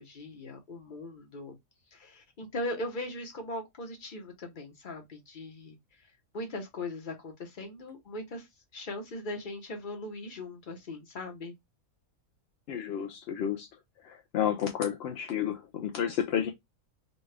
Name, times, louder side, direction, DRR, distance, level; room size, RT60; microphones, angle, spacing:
voice 1, 0.0-1.6 1.9-5.8 6.3-8.5 8.7-11.5, left 1 dB, 40° left, 1.0 m, -39 dB
voice 2, 12.7-13.7 14.0-16.5, left 9 dB, 65° left, 0.6 m, -31 dB
4.2 x 2.3 x 3.2 m
omnidirectional pair, 1.5 m